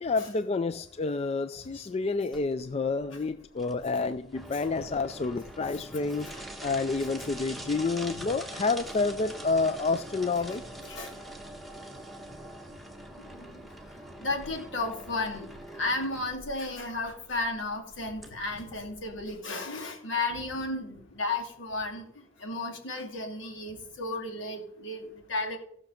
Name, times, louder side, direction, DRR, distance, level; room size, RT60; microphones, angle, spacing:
voice 1, 0.0-10.6, left 3 dB, 30° left, 12 dB, 0.3 m, -29 dB
sound 1, 2.3-19.4, right 1 dB, ahead, 1.3 m, -44 dB
voice 2, 13.3-13.6 14.2-22.1 22.4-25.6, left 2 dB, 70° left, 2 dB, 2.7 m, -34 dB
15.0 x 6.5 x 5.8 m, 0.68 s
head